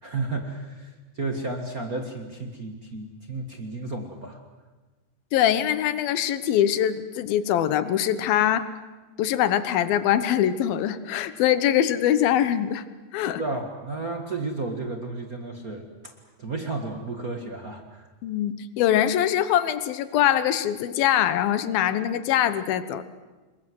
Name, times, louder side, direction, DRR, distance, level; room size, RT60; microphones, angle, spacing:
voice 1, 0.0-0.9 1.1-4.4 13.4-16.1 16.4-18.0, right 3 dB, 50° right, 4 dB, 1.0 m, -32 dB
voice 2, 5.3-8.7 9.2-12.8 13.1-13.4 18.2-23.0, left 11 dB, 75° left, 13 dB, 2.8 m, -23 dB
27.0 x 22.0 x 7.9 m, 1.2 s
omnidirectional pair, 4.5 m